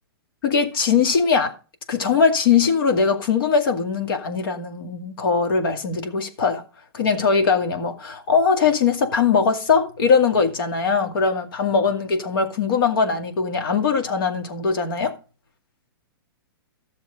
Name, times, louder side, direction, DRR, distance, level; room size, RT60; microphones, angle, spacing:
voice 1, 0.4-1.5 1.9-6.6 6.9-15.1, left 5 dB, 65° left, 2.1 m, -21 dB
13.5 x 6.9 x 4.0 m
hypercardioid pair, 150°, 13 cm